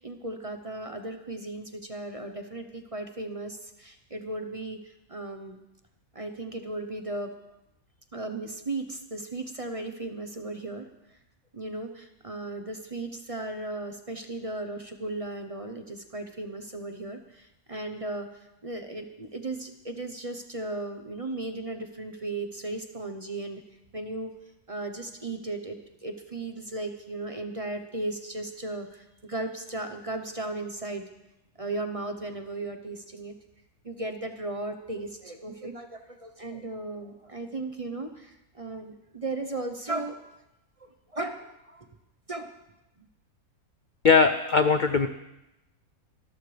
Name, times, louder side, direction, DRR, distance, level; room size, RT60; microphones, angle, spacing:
voice 1, 0.0-5.6 6.1-7.3 8.1-11.2 11.5-23.6 23.9-24.3 24.7-25.8 26.0-31.0 31.6-33.3 33.8-40.2 40.8-41.9 42.3-42.5 43.0-43.1, right 2 dB, 30° right, 6 dB, 0.8 m, -36 dB
voice 2, 44.0-45.1, left 5 dB, 60° left, 9 dB, 0.5 m, -20 dB
26.0 x 13.0 x 3.4 m, 0.92 s
omnidirectional pair, 1.6 m